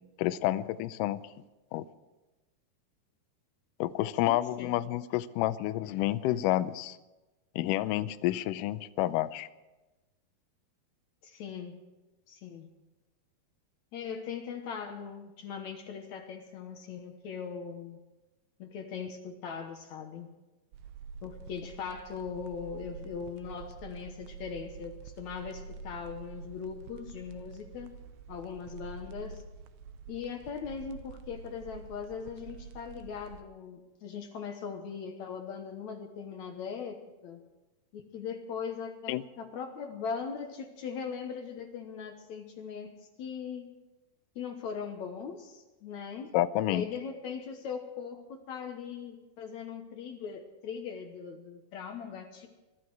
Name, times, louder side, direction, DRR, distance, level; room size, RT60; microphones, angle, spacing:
voice 1, 0.2-1.2 1.7-1.9 3.8-7.0 7.6-9.5 39.1-39.2 46.3-46.9, left 14 dB, 85° left, 13 dB, 1.9 m, -29 dB
voice 2, 4.2-4.8 11.2-11.8 12.3-12.7 13.9-18.0 18.6-20.3 21.2-27.9 28.3-29.4 30.1-37.4 37.9-42.9 43.2-43.7 44.4-46.3 46.6-52.5, left 6 dB, 65° left, 5 dB, 1.9 m, -40 dB
sound 1, 20.7-33.4, right 5 dB, 85° right, 2.8 m, -47 dB
22.5 x 13.0 x 4.7 m, 1.1 s
omnidirectional pair, 4.5 m